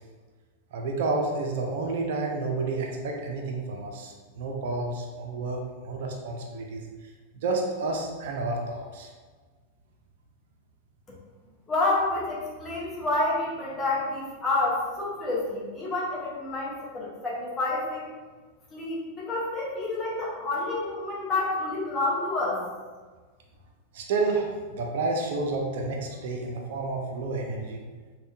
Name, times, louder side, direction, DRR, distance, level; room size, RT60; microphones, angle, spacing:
voice 1, 0.7-9.1 23.9-27.8, right 3 dB, 55° right, 1 dB, 0.4 m, -30 dB
voice 2, 11.7-18.1 18.7-22.6, left 2 dB, 20° left, -5 dB, 0.9 m, -29 dB
3.4 x 2.2 x 2.6 m, 1.4 s
figure-of-eight pair, 90°, 0 cm